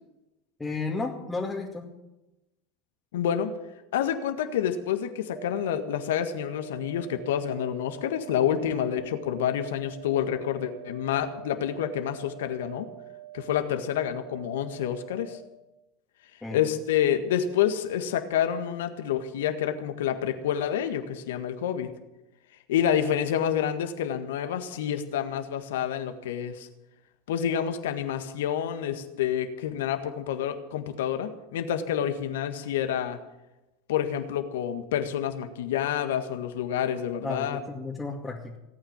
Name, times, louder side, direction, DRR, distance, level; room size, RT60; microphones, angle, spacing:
voice 1, 0.6-1.9 16.4-16.6 37.2-38.6, left 3 dB, 10° left, -4 dB, 2.4 m, -33 dB
voice 2, 3.1-3.5 3.9-12.9 13.3-15.4 16.5-21.9 22.7-26.7 27.3-33.2 33.9-37.6, left 9 dB, 75° left, 8 dB, 1.7 m, -28 dB
sound 1, 5.4-15.4, right 13 dB, 20° right, 3.0 m, -46 dB
18.5 x 9.0 x 8.8 m, 0.98 s
hypercardioid pair, 90°, 0 cm